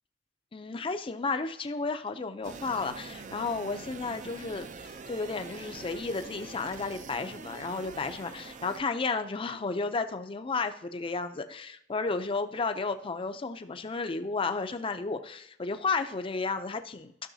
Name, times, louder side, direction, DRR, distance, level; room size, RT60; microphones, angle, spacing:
voice 1, 0.5-17.1, left 4 dB, 30° left, 8 dB, 0.5 m, -33 dB
sound 1, 2.4-8.8, right 4 dB, 40° right, 0.5 m, -44 dB
12.5 x 6.3 x 2.7 m, 0.72 s
head